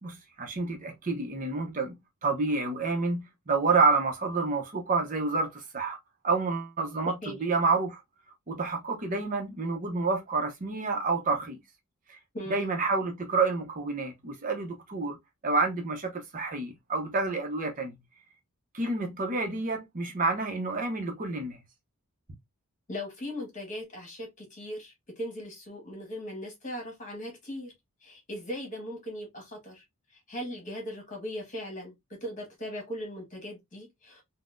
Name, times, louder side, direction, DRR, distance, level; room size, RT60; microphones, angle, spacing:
voice 1, 0.0-1.9 2.2-6.0 6.2-7.1 7.4-8.0 8.5-11.6 12.1-12.2 12.5-15.2 15.4-18.0 18.7-21.6, right 3 dB, 35° right, 0.6 m, -28 dB
voice 2, 7.0-7.4 12.3-12.7 22.9-27.7 28.0-29.8 30.1-34.2, equal, 35° left, 1.4 m, -39 dB
3.9 x 2.0 x 2.4 m
head